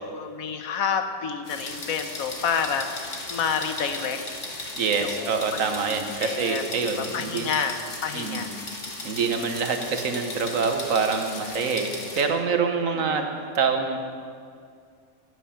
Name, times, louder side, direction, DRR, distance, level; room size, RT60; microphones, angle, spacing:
voice 1, 0.1-5.3 5.8-8.5 9.2-9.6 12.8-13.3, left 6 dB, 80° left, 7 dB, 1.3 m, -30 dB
sound 1, 1.4-12.2, left 2 dB, 60° left, 2.0 m, -37 dB
voice 2, 4.8-7.5 8.1-8.5 9.0-14.0, right 5 dB, 70° right, 5 dB, 1.4 m, -26 dB
14.5 x 9.6 x 5.7 m, 2.2 s
omnidirectional pair, 1.5 m